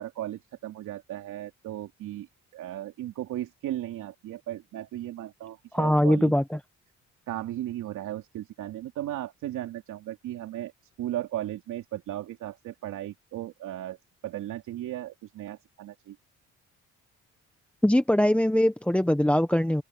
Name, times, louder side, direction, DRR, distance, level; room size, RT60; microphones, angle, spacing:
voice 1, 0.0-6.3 7.3-10.7 11.0-14.0 14.2-16.2, right 13 dB, 85° right, 2.9 m, -36 dB
voice 2, 5.7-6.6 17.8-19.8, left 1 dB, 5° left, 1.0 m, -22 dB
open air
cardioid pair, 90°, 30 cm